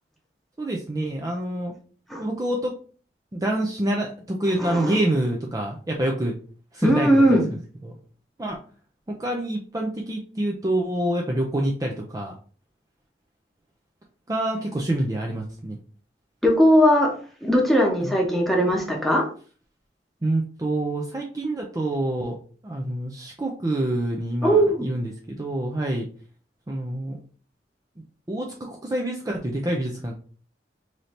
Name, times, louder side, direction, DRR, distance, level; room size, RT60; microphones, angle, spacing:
voice 1, 0.6-1.7 2.2-2.7 3.3-6.3 6.7-7.9 8.4-8.6 9.1-12.3 14.3-15.8 18.0-18.1 20.2-22.4 22.6-26.1 26.7-27.2 28.0-30.1, right 1 dB, 20° right, 0 dB, 0.4 m, -27 dB
voice 2, 6.8-7.4 16.4-17.1 17.4-19.3 24.4-24.9, equal, ahead, -1 dB, 0.9 m, -19 dB
3.2 x 2.7 x 4.1 m, 0.41 s
head